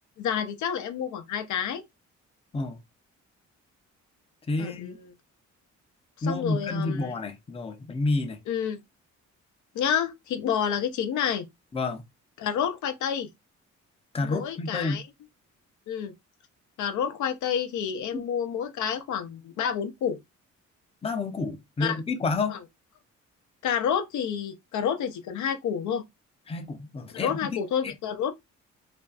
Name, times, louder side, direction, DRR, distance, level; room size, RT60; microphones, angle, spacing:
voice 1, 0.2-1.8 4.6-5.1 6.2-7.1 8.5-8.8 9.7-11.5 12.4-13.3 14.2-15.1 15.9-16.1 16.8-20.2 21.8-22.0 22.5-22.6 23.6-26.0 27.1-28.3, left 8 dB, 75° left, 0.5 m, -29 dB
voice 2, 4.5-5.0 6.2-8.4 11.7-12.0 14.1-15.0 18.1-18.2 21.0-22.6 26.5-27.4, left 3 dB, 20° left, 0.5 m, -29 dB
2.5 x 2.3 x 2.2 m
cardioid pair, 90°, 30 cm